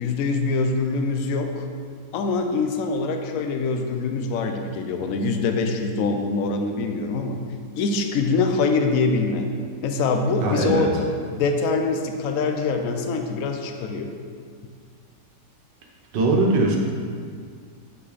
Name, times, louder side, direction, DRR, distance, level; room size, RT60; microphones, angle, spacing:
voice 1, 0.0-1.7 2.1-7.4 7.8-9.5 9.8-10.9 11.3-14.1, left 4 dB, 65° left, 5 dB, 0.9 m, -24 dB
voice 2, 10.4-10.8 16.1-16.8, right 2 dB, 80° right, -1 dB, 1.7 m, -20 dB
7.8 x 5.8 x 4.0 m, 2.1 s
omnidirectional pair, 1.9 m